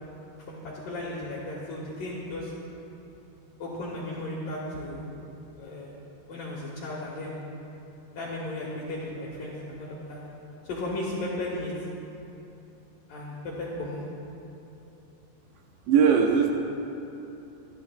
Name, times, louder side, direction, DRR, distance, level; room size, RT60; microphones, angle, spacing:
voice 1, 0.4-2.5 3.6-5.2 5.6-5.9 6.3-7.4 8.2-10.2 10.6-11.7 13.1-14.0, left 1 dB, 65° left, -4 dB, 2.3 m, -35 dB
voice 2, 15.9-16.5, right 6 dB, 80° right, 1 dB, 2.5 m, -19 dB
27.0 x 11.5 x 2.2 m, 2.9 s
omnidirectional pair, 5.6 m